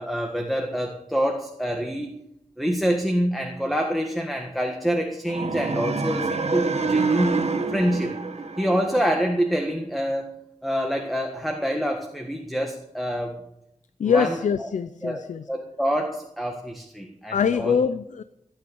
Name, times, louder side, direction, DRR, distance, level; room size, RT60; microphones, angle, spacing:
voice 1, 0.0-2.2 2.6-7.4 7.7-8.1 8.6-10.3 10.6-13.4 14.0-14.4 15.0-17.8, equal, ahead, 3 dB, 1.7 m, -26 dB
sound 1, 5.3-9.4, right 4 dB, 60° right, 1.8 m, -26 dB
voice 2, 14.0-15.4 17.3-18.2, left 6 dB, 90° left, 13 dB, 0.6 m, -24 dB
16.5 x 9.1 x 7.1 m, 0.82 s
wide cardioid pair, 85°, 12 cm